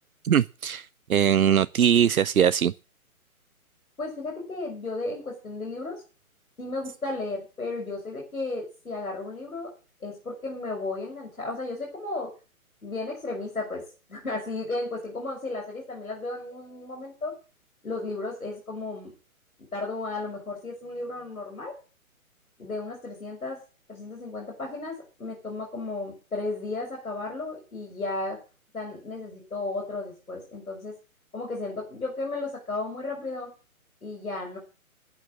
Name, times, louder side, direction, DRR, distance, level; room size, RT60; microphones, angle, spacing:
voice 1, 0.2-2.7, right 9 dB, 80° right, 0.6 m, -21 dB
voice 2, 4.0-6.0 6.6-9.7 10.0-12.3 12.8-13.8 14.1-17.3 17.8-19.1 19.7-21.7 22.6-23.6 23.9-28.4 28.7-30.9 31.3-33.5 34.0-34.6, left 2 dB, 75° left, 6.2 m, -34 dB
12.0 x 9.0 x 7.5 m
figure-of-eight pair, 135°, 43 cm